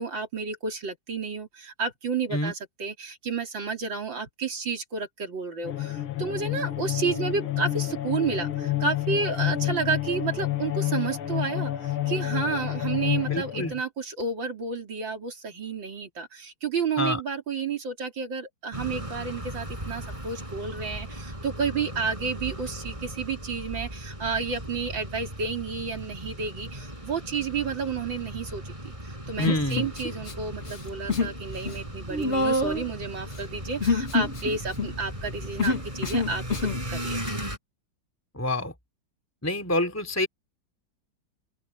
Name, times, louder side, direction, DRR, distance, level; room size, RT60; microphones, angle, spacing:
voice 1, 0.0-37.2, right 5 dB, 65° right, 3.9 m, -31 dB
sound 1, 5.6-13.8, left 13 dB, 80° left, 2.1 m, -29 dB
voice 2, 13.3-13.7 17.0-17.2 29.4-29.9 38.3-38.7 39.4-40.3, left 1 dB, 5° left, 3.5 m, -27 dB
sound 2, 18.7-37.6, right 1 dB, 15° right, 6.3 m, -37 dB
Human voice, 29.4-30.3 30.6-31.4 31.6-36.8, left 3 dB, 35° left, 2.0 m, -27 dB
open air
omnidirectional pair, 2.3 m